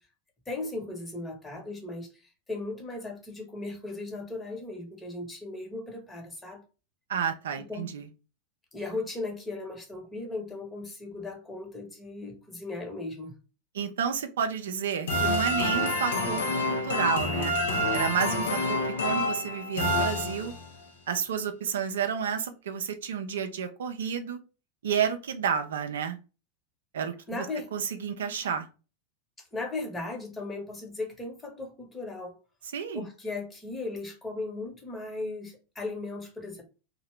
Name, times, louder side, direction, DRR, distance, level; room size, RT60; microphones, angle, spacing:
voice 1, 0.5-6.6 7.6-7.9 8.7-13.3 27.3-27.7 29.5-32.4 32.9-36.6, left 2 dB, 15° left, 1.0 m, -37 dB
voice 2, 7.1-8.1 13.7-17.5 17.9-18.8 19.0-20.5 21.1-24.4 24.8-26.2 26.9-27.5 27.7-28.7 32.7-33.1, right 7 dB, 70° right, 0.4 m, -30 dB
sound 1, 15.1-20.8, left 1 dB, 70° left, 0.5 m, -28 dB
2.7 x 2.2 x 3.1 m
figure-of-eight pair, 90°, 0 cm